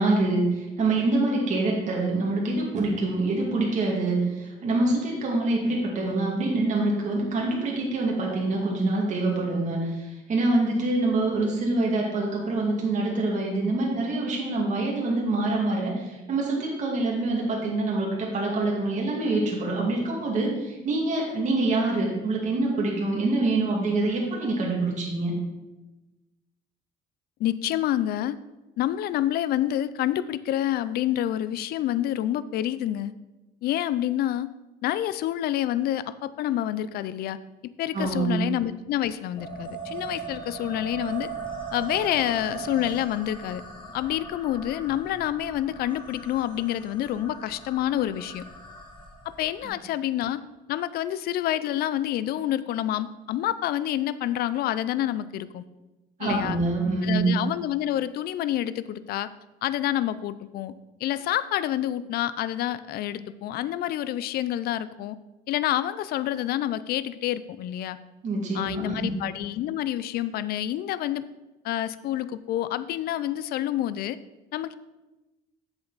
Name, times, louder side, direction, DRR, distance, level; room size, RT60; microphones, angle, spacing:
voice 1, 0.0-25.3 37.9-38.5 49.6-49.7 56.2-57.3 68.2-69.1, right 2 dB, 45° right, -2 dB, 2.3 m, -25 dB
voice 2, 27.4-28.4 28.8-33.1 33.6-34.5 34.8-37.4 37.6-41.3 41.7-43.6 43.9-48.4 49.4-50.4 50.7-55.6 56.2-56.6 57.0-59.3 59.6-60.7 61.0-65.2 65.5-68.0 68.5-71.2 71.6-74.2 74.5-74.7, left 12 dB, 65° left, 15 dB, 0.4 m, -28 dB
sound 1, 39.4-49.6, right 4 dB, 25° left, 1.6 m, -39 dB
8.0 x 7.0 x 4.0 m, 1.1 s
cardioid pair, 110°, 17 cm